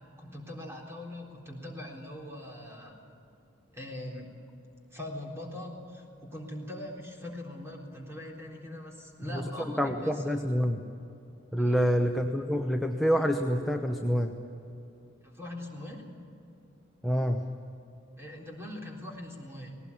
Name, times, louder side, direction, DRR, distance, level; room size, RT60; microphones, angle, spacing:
voice 1, 0.2-3.0 3.7-4.3 4.9-10.4 11.6-11.8 15.2-16.1 18.2-19.7, left 1 dB, 15° right, -1 dB, 3.8 m, -42 dB
voice 2, 9.8-10.8 11.5-14.3 17.0-17.4, equal, ahead, 3 dB, 0.9 m, -27 dB
19.5 x 18.5 x 8.5 m, 2.7 s
head